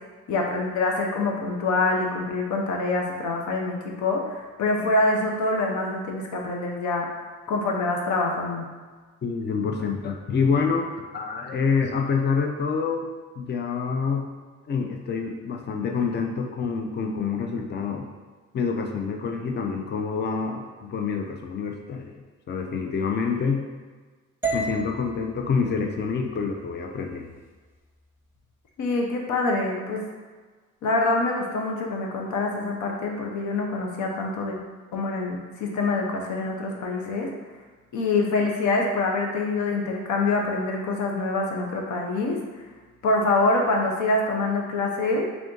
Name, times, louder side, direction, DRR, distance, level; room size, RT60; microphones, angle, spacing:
voice 1, 0.3-7.1 7.5-8.7 28.8-30.0 30.8-34.6 34.9-37.3 37.9-42.4 43.0-45.3, left 2 dB, 75° left, 1 dB, 0.8 m, -25 dB
voice 2, 9.2-10.9 11.1-13.1 13.4-14.3 14.7-18.1 18.5-22.1 22.5-23.6 24.5-27.3, left 5 dB, 35° left, 3 dB, 0.5 m, -27 dB
sound 1, 24.4-28.6, right 2 dB, 5° right, 0.9 m, -35 dB
3.5 x 2.6 x 3.7 m, 1.4 s
cardioid pair, 90°, 30 cm